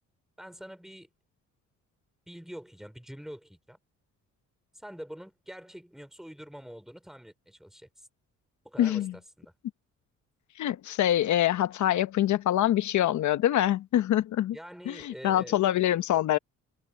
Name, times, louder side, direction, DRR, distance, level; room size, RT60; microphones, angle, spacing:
voice 1, 0.4-1.1 2.3-3.8 4.7-8.1 8.6-9.5 14.5-15.6, equal, ahead, 5.3 m, -45 dB
voice 2, 8.8-9.1 10.6-14.6 14.9-16.4, left 12 dB, 70° left, 1.1 m, -25 dB
cardioid pair, 90°, 30 cm